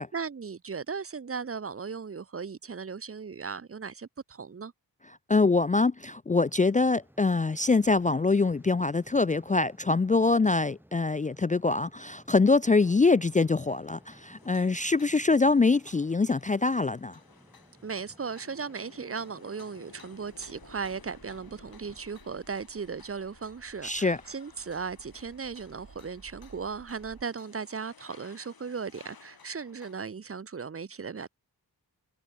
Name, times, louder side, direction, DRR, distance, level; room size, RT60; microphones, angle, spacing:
voice 1, 0.0-4.7 17.8-31.3, right 5 dB, 35° right, 0.8 m, -37 dB
voice 2, 5.3-17.2 23.8-24.2, left 3 dB, 20° left, 0.4 m, -24 dB
sound 1, 6.3-22.0, right 1 dB, 5° right, 3.7 m, -58 dB
sound 2, 12.7-30.1, left 6 dB, 70° left, 5.4 m, -56 dB
sound 3, 19.9-27.2, right 5 dB, 60° right, 6.8 m, -57 dB
wide cardioid pair, 135°, 37 cm